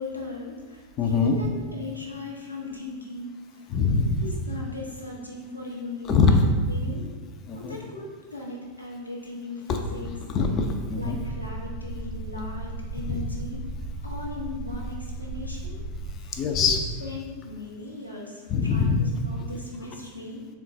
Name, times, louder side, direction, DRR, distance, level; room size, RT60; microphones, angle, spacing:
voice 1, 0.0-3.7 4.2-6.4 6.7-7.1 7.5-10.1 11.0-13.6 14.0-15.8 16.2-20.5, left 3 dB, 85° left, -3 dB, 0.7 m, -38 dB
voice 2, 1.0-1.4 3.7-4.3 6.1-6.3 7.5-7.8 9.7-9.8 10.3-11.2 13.1-13.2 16.3-16.8 18.5-19.0, left 5 dB, 30° left, 5 dB, 0.4 m, -23 dB
sound 1, 11.0-16.2, right 2 dB, 50° right, 0.5 m, -35 dB
3.7 x 2.3 x 3.7 m, 1.5 s
figure-of-eight pair, 90°, 0 cm